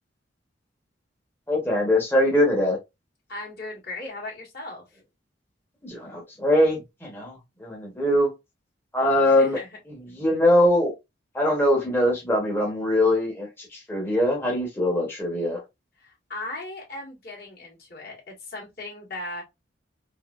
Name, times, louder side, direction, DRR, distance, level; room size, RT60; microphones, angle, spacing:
voice 1, 1.5-2.8 5.8-8.3 8.9-9.6 9.9-10.9 11.3-15.6, left 1 dB, 10° left, 1.0 m, -22 dB
voice 2, 3.3-4.8 9.3-9.7 16.0-19.4, left 2 dB, 55° left, 1.8 m, -37 dB
3.6 x 2.7 x 2.3 m
head